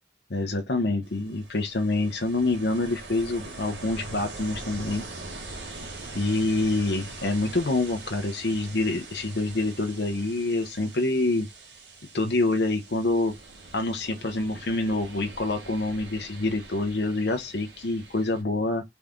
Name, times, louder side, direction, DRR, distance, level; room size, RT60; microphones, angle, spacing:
voice 1, 0.3-5.0 6.1-11.5 12.1-13.3 13.7-18.8, left 2 dB, 65° left, 0.8 m, -26 dB
Ocean, 1.0-18.4, right 3 dB, 80° right, 1.5 m, -43 dB
4.0 x 3.6 x 3.6 m
head